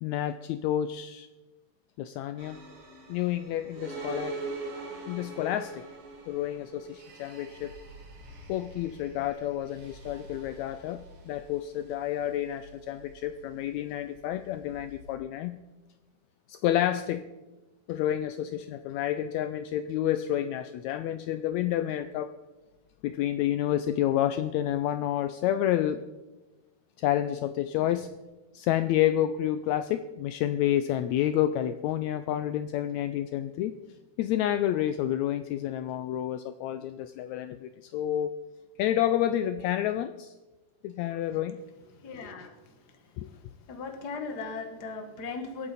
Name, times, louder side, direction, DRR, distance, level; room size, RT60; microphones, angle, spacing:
voice 1, 0.0-1.3 2.0-2.6 3.1-4.4 5.1-5.8 6.3-7.7 8.5-15.6 16.5-17.2 17.9-22.3 23.0-26.0 27.0-28.1 28.5-33.7 34.2-38.3 38.8-40.3 40.8-41.6 43.2-43.3, left 12 dB, 85° left, 11 dB, 1.6 m, -29 dB
sound 1, 2.4-15.2, right 3 dB, 70° right, 3.7 m, -43 dB
voice 2, 42.0-42.5 43.2-43.4 43.7-45.7, left 4 dB, 40° left, 5 dB, 1.5 m, -38 dB
25.0 x 8.6 x 4.1 m, 1.1 s
omnidirectional pair, 3.7 m